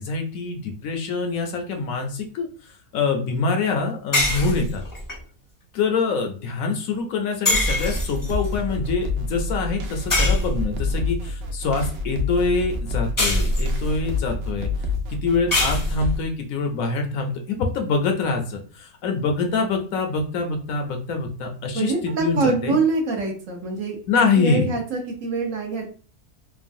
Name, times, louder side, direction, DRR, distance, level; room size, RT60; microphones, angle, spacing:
voice 1, 0.0-2.5 2.9-4.8 5.7-14.7 15.1-22.8 24.1-24.7, left 4 dB, 70° left, 4 dB, 0.9 m, -25 dB
sound 1, 4.1-5.2 7.5-8.5 10.1-11.0 13.2-14.0 15.5-16.2, left 1 dB, 20° left, 0.6 m, -23 dB
sound 2, 7.6-16.2, left 3 dB, 80° right, 0.5 m, -28 dB
voice 2, 21.7-24.0 24.3-25.9, right 3 dB, 65° right, 1 dB, 1.0 m, -24 dB
3.1 x 2.2 x 2.5 m, 0.38 s
omnidirectional pair, 1.6 m